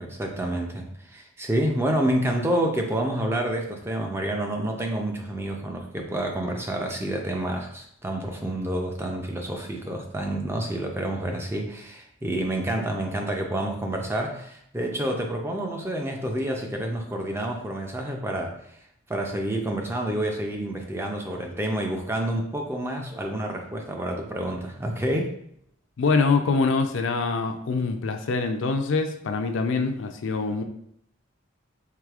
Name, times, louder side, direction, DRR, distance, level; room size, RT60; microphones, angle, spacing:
voice 1, 0.0-18.6 19.1-25.3, right 1 dB, 10° right, 2 dB, 0.3 m, -28 dB
voice 2, 26.0-30.6, left 4 dB, 60° left, 6 dB, 0.4 m, -24 dB
4.7 x 3.2 x 2.4 m, 0.70 s
head